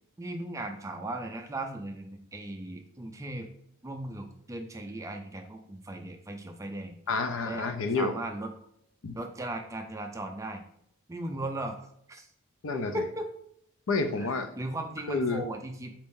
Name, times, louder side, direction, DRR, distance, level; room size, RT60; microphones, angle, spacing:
voice 1, 0.2-3.5 3.8-7.0 7.4-7.6 7.9-8.5 9.1-10.6 11.1-12.3 12.7-13.3 14.2-15.9, right 1 dB, 15° right, 5 dB, 0.3 m, -37 dB
voice 2, 7.1-8.1 9.0-9.2 12.6-12.9 13.9-14.5 15.1-15.4, left 3 dB, 65° left, 7 dB, 0.5 m, -29 dB
4.2 x 3.6 x 2.6 m, 0.71 s
head